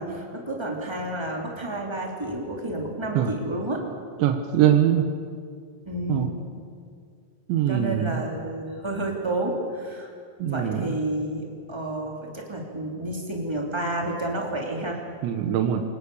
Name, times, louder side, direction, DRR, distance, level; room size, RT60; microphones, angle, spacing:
voice 1, 0.0-3.8 5.8-6.3 7.7-10.1 10.4-15.0, right 1 dB, 5° right, -1 dB, 2.5 m, -30 dB
voice 2, 4.2-5.1 6.1-6.3 7.5-8.2 10.4-10.8 15.2-15.8, right 10 dB, 80° right, 5 dB, 3.5 m, -22 dB
27.5 x 18.5 x 7.1 m, 2.2 s
omnidirectional pair, 5.2 m